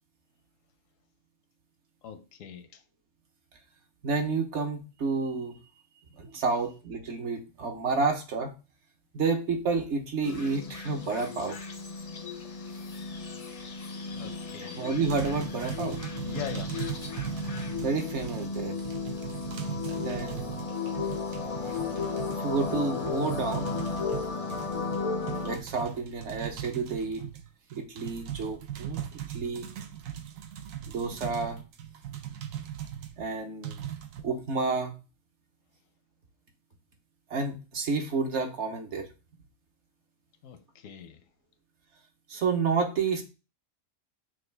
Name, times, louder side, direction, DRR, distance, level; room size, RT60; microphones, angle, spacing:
voice 1, 2.0-2.7 14.1-14.8 16.2-16.7 40.4-41.2, left 7 dB, 80° left, 1.0 m, -41 dB
voice 2, 4.0-5.6 6.1-8.5 9.1-11.6 14.6-16.0 17.8-18.8 19.8-20.5 21.6-21.8 22.4-23.7 25.4-27.3 27.9-29.0 29.3-29.7 30.8-31.6 33.2-33.8 34.2-34.9 37.3-39.1 42.3-43.2, right 4 dB, 65° right, 1.1 m, -30 dB
sound 1, 10.2-25.6, left 4 dB, 50° left, 0.4 m, -34 dB
sound 2, 15.0-33.1 33.6-34.2, right 10 dB, 90° right, 1.0 m, -39 dB
6.1 x 2.3 x 3.3 m
omnidirectional pair, 1.3 m